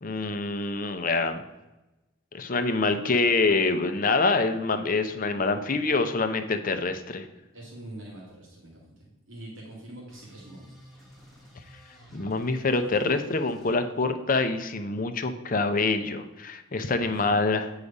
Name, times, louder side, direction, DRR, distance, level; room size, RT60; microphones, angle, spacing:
voice 1, 0.0-1.4 2.3-7.3 12.1-17.7, left 3 dB, 40° left, 8 dB, 0.6 m, -26 dB
voice 2, 7.5-10.8 16.8-17.4, right 1 dB, 70° right, -3 dB, 2.0 m, -44 dB
sound 1, 10.1-13.7, equal, ahead, 2.3 m, -51 dB
8.4 x 4.9 x 5.3 m, 1.0 s
head